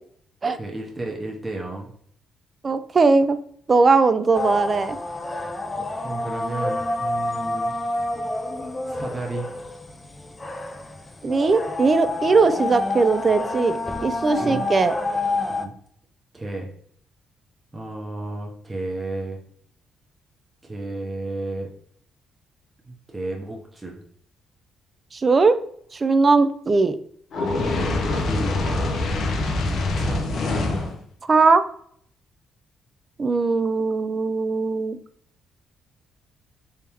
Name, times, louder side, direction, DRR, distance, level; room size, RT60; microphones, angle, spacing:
voice 1, 0.6-1.9 5.7-7.7 8.9-9.5 14.4-14.7 15.5-15.7 16.3-16.7 17.7-19.4 20.6-21.7 22.9-24.0 28.2-28.6 29.7-30.5, right 2 dB, 20° right, -1 dB, 0.8 m, -32 dB
voice 2, 2.6-3.4 3.7-5.0 11.2-14.9 25.1-25.6 25.9-27.0 31.3-31.6 33.2-35.0, right 4 dB, 35° right, 12 dB, 0.4 m, -19 dB
sound 1, 4.3-15.7, left 2 dB, 20° left, 0.5 m, -29 dB
Fire, 27.3-31.0, left 2 dB, 65° left, 0.7 m, -24 dB
3.5 x 3.3 x 2.9 m, 0.62 s
cardioid pair, 90°, 0 cm